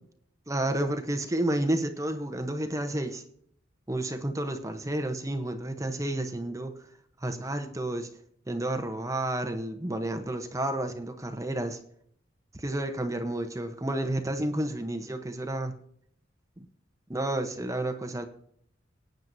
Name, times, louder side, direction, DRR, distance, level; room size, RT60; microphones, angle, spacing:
voice 1, 0.5-3.2 3.9-6.7 7.2-8.1 8.5-11.8 12.5-15.7 16.6-16.7 17.1-18.3, right 1 dB, 15° right, 8 dB, 0.8 m, -31 dB
19.5 x 9.2 x 2.7 m, 0.65 s
head